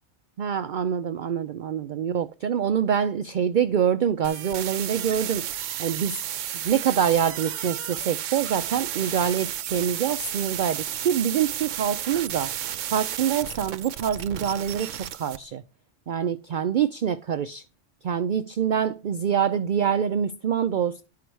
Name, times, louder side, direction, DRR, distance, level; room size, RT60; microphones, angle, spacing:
voice 1, 0.4-5.4 5.8-6.2 6.6-12.5 12.9-15.6 16.1-17.6 18.0-21.0, right 8 dB, 60° right, 0.5 m, -25 dB
sound 1, 4.2-15.4, right 11 dB, 80° right, 1.0 m, -32 dB
11.5 x 4.7 x 4.6 m
omnidirectional pair, 1.3 m